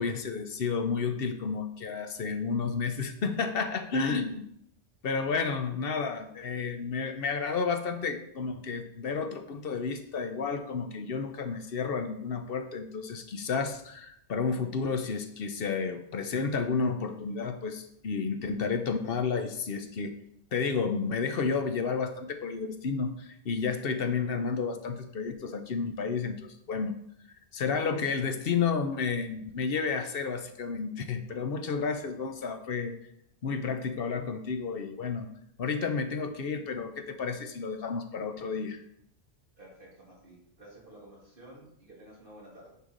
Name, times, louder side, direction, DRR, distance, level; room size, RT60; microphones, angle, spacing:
voice 1, 0.0-4.5 5.0-20.2 20.5-26.9 27.5-33.0 33.4-35.3 35.6-38.8, left 5 dB, 60° left, 7 dB, 0.9 m, -31 dB
voice 2, 39.6-42.7, right 1 dB, 50° right, -5 dB, 2.7 m, -52 dB
9.7 x 4.7 x 3.9 m, 0.73 s
omnidirectional pair, 1.2 m